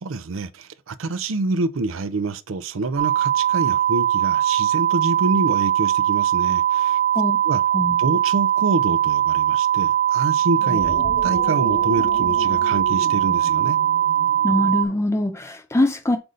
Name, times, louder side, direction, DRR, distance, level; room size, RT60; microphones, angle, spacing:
voice 1, 0.0-7.6 8.0-13.8, right 3 dB, 70° right, 0.5 m, -27 dB
sound 1, 3.0-14.9, right 11 dB, 45° right, 0.8 m, -20 dB
sound 2, 10.4-15.0, left 1 dB, 55° left, 2.1 m, -34 dB
voice 2, 14.4-16.2, left 1 dB, 15° left, 0.4 m, -22 dB
7.8 x 2.7 x 5.0 m
head